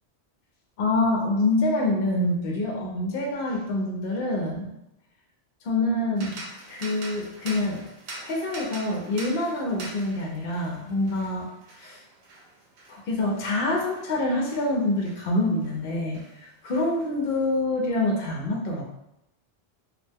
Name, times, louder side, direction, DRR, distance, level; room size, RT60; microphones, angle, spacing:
voice 1, 0.8-4.7 5.6-6.4 6.7-7.8 8.2-11.5 11.8-12.0 12.9-18.8, left 2 dB, 60° left, -1 dB, 0.8 m, -26 dB
sound 1, 6.2-15.8 16.1-17.4, right 2 dB, 85° right, 0.9 m, -44 dB
2.7 x 2.1 x 3.3 m, 0.85 s
omnidirectional pair, 1.1 m